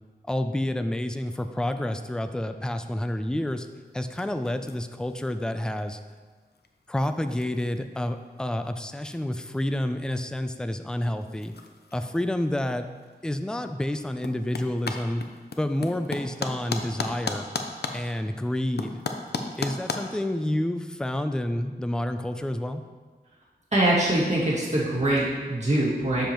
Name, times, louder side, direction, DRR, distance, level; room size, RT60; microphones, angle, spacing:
voice 1, 0.3-3.7 3.9-6.0 6.9-11.5 11.9-12.9 13.2-15.3 15.6-17.5 17.9-19.0 19.6-22.8, left 1 dB, 5° left, 9 dB, 0.4 m, -29 dB
sound 1, 3.5-20.0, left 4 dB, 70° left, 0.6 m, -38 dB
voice 2, 23.7-26.3, right 1 dB, 45° right, -7 dB, 2.1 m, -23 dB
7.5 x 6.8 x 3.0 m, 1.4 s
wide cardioid pair, 80°, 17 cm